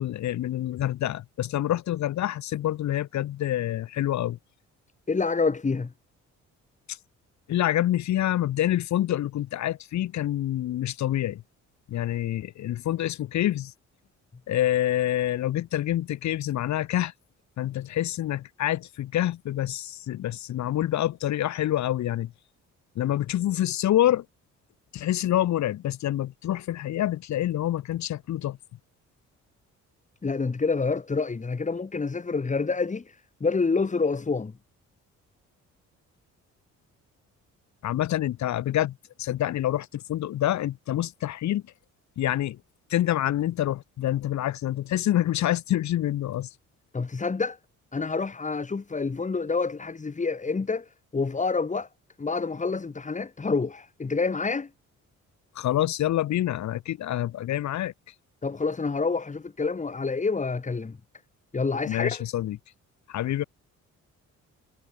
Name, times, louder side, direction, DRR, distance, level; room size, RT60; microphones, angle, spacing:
voice 1, 0.0-4.4 6.9-7.0 7.5-11.4 11.9-13.7 14.5-17.1 17.6-22.3 22.9-24.2 24.9-28.6 37.8-41.6 42.2-42.6 42.9-46.5 55.5-57.9 61.8-62.6 63.1-63.4, left 13 dB, 65° left, 1.1 m, -27 dB
voice 2, 5.1-5.9 30.2-33.2 33.4-34.5 46.9-47.6 47.9-51.9 52.2-54.7 58.4-61.0 61.5-62.2, left 4 dB, 25° left, 1.9 m, -27 dB
cardioid pair, 90°, 30 cm